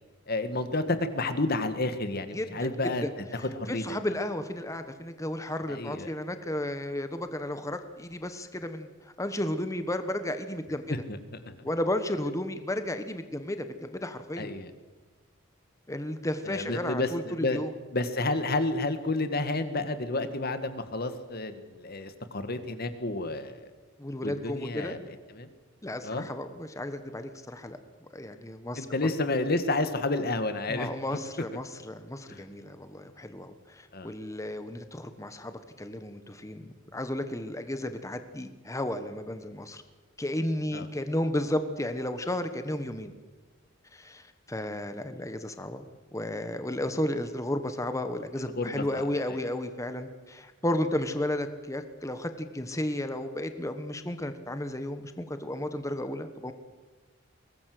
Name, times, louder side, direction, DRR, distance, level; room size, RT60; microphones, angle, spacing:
voice 1, 0.3-3.0 3.3-3.8 5.7-6.1 10.9-11.2 11.5-11.6 14.4-14.7 16.5-17.6 17.9-23.6 24.2-25.0 25.3-25.5 26.0-26.3 28.8-30.9 32.3-32.4 33.9-34.1 40.7-40.9 48.4-49.0, left 2 dB, 50° left, 10 dB, 1.8 m, -30 dB
voice 2, 2.3-2.8 3.0-10.9 11.6-14.5 15.9-17.7 24.0-24.9 25.8-28.9 30.7-39.8 40.2-43.1 43.9-45.9 46.1-56.5, left 1 dB, 15° left, 9 dB, 1.2 m, -33 dB
22.5 x 18.5 x 7.8 m, 1.3 s
head